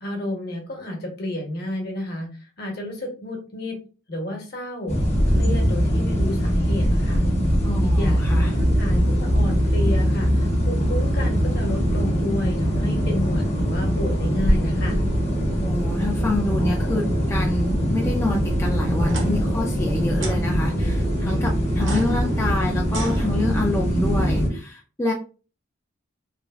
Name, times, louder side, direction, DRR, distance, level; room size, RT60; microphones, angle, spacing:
voice 1, 0.0-2.3 2.6-3.8 4.1-5.0 5.3-7.2 7.8-15.0, left 1 dB, 55° left, 1 dB, 1.0 m, -31 dB
sound 1, 4.9-24.5, equal, 35° left, 0.8 m, -22 dB
voice 2, 7.6-8.5 15.6-25.1, left 2 dB, 15° left, -2 dB, 0.3 m, -27 dB
sound 2, 8.3-24.6, right 2 dB, 35° right, 0.5 m, -36 dB
sound 3, 19.0-19.3 20.2-20.4 21.7-23.8, right 3 dB, 65° right, 0.8 m, -35 dB
3.2 x 2.4 x 2.3 m, 0.35 s
head